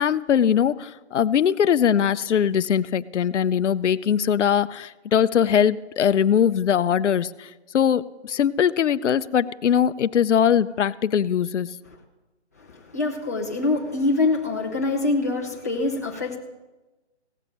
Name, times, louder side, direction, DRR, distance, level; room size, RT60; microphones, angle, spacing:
voice 1, 0.0-11.8, left 8 dB, 90° left, 15 dB, 0.5 m, -21 dB
voice 2, 12.6-16.4, left 3 dB, 15° left, -3 dB, 0.6 m, -25 dB
16.5 x 6.9 x 6.1 m, 1.1 s
hypercardioid pair, 170°, 35 cm